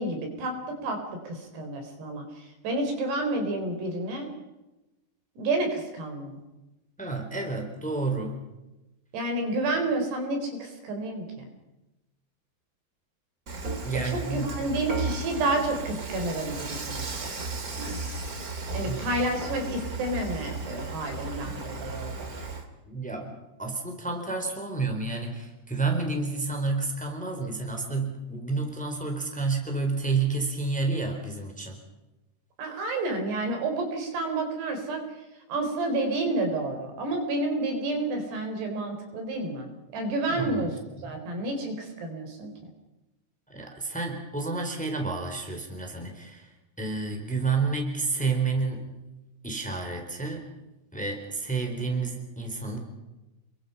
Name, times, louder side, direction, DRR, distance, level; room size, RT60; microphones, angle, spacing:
voice 1, 0.0-4.3 5.4-6.4 9.1-11.4 14.0-17.3 18.7-22.3 32.6-35.0 35.5-40.7 41.0-42.5, right 2 dB, 80° right, 4 dB, 6.1 m, -30 dB
voice 2, 7.0-8.4 13.8-14.5 18.8-19.0 22.9-23.3 23.6-31.8 40.3-40.7 41.0-41.2 43.5-46.5 46.8-48.9 49.4-50.5 50.9-52.8, right 4 dB, ahead, 3 dB, 3.6 m, -30 dB
Dishes pots and pans / Frying (food), 13.5-22.6, right 3 dB, 30° right, 1.7 m, -35 dB
29.0 x 23.0 x 5.7 m, 1.0 s
omnidirectional pair, 4.7 m